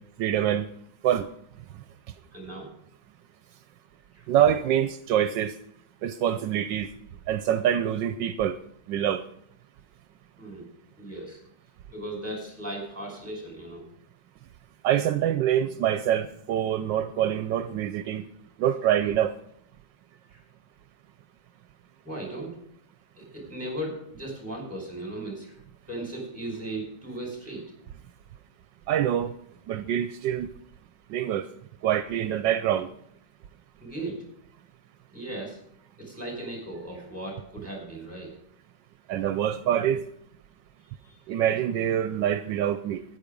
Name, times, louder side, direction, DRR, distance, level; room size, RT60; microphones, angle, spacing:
voice 1, 0.2-0.7 1.0-1.3 4.3-5.5 6.0-6.9 7.3-8.6 8.9-9.2 14.8-18.3 18.6-19.3 28.9-29.3 29.7-30.5 31.1-31.4 31.8-32.9 39.1-40.0 41.3-43.0, right 10 dB, 80° right, 11 dB, 1.3 m, -25 dB
voice 2, 2.3-2.7 4.1-4.3 10.4-10.7 11.0-11.4 11.9-13.9 20.3-20.4 22.0-22.6 23.1-25.6 25.9-27.6 33.8-34.2 35.1-35.6 36.0-38.4 40.8-41.2, right 1 dB, 5° right, 0 dB, 5.3 m, -37 dB
13.5 x 9.7 x 5.2 m, 0.72 s
omnidirectional pair, 2.0 m